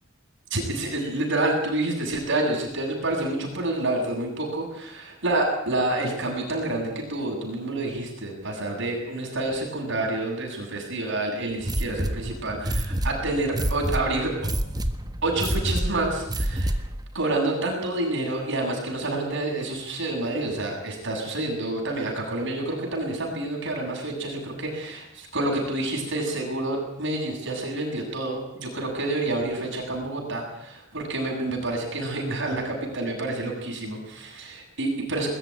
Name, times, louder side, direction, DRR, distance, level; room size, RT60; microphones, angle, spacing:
voice 1, 0.5-14.3 15.2-16.7 17.1-35.3, right 2 dB, 65° right, -1 dB, 7.7 m, -28 dB
sound 1, 11.6-17.0, right 1 dB, 20° right, 1.5 m, -28 dB
21.5 x 14.0 x 9.9 m, 0.82 s
head